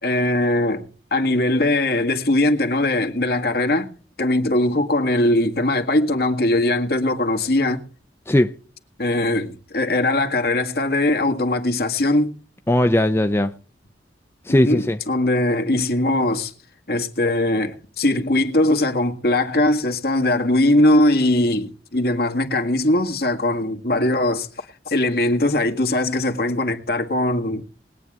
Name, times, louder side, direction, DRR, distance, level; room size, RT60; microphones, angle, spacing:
voice 1, 0.0-3.9 4.2-7.8 9.0-12.3 14.5-16.5 16.9-27.7, left 1 dB, 55° left, 1.8 m, -20 dB
voice 2, 12.7-13.5 14.4-15.0, left 1 dB, 15° left, 0.5 m, -18 dB
21.0 x 9.1 x 3.6 m
head